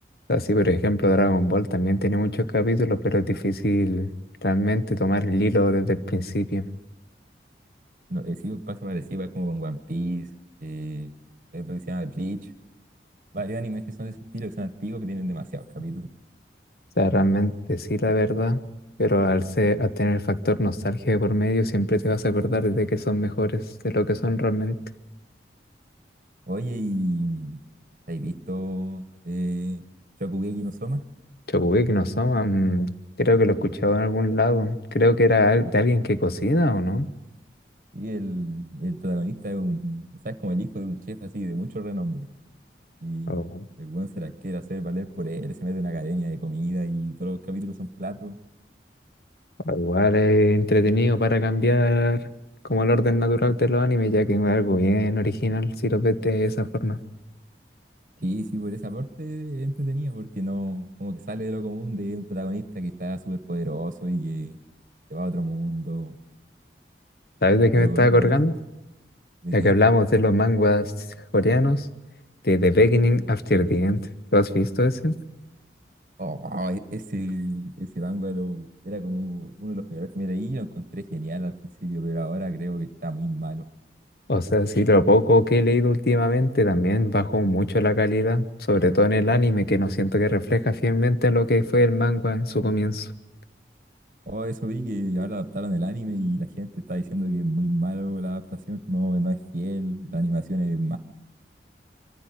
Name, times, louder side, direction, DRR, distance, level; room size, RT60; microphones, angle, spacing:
voice 1, 0.3-4.1 4.4-6.7 17.0-18.6 19.0-24.8 31.5-32.9 33.2-37.1 43.3-43.6 49.6-52.2 52.7-57.0 67.4-68.5 69.5-70.9 71.3-71.9 72.4-75.2 84.3-93.1, left 1 dB, 60° left, 12 dB, 1.1 m, -21 dB
voice 2, 8.1-10.3 10.6-11.2 11.5-12.5 13.3-16.1 26.5-27.6 28.1-29.8 30.2-31.1 37.9-42.3 43.0-48.4 58.2-64.6 65.1-66.2 67.7-68.4 69.4-69.7 76.2-83.6 94.3-101.0, right 1 dB, 45° right, 12 dB, 1.2 m, -30 dB
24.0 x 14.5 x 9.4 m, 0.96 s
head